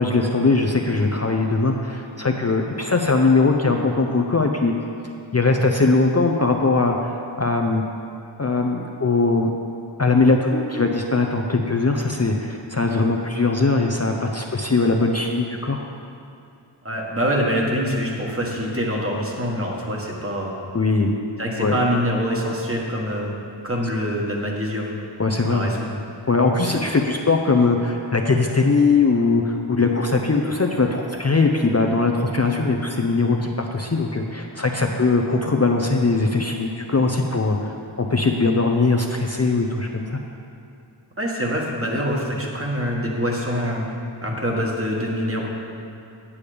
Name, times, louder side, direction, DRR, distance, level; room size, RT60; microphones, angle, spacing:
voice 1, 0.0-4.7 5.3-7.8 8.4-9.5 10.0-15.9 20.7-21.1 21.6-21.7 25.2-25.7 26.3-40.2, left 3 dB, 35° left, 2 dB, 0.6 m, -20 dB
voice 2, 16.8-20.6 21.4-23.3 23.6-25.0 25.5-26.0 26.7-26.8 41.2-44.0 44.2-45.5, equal, 30° right, -2 dB, 1.6 m, -25 dB
8.6 x 8.2 x 5.0 m, 2.6 s
wide cardioid pair, 55°, 47 cm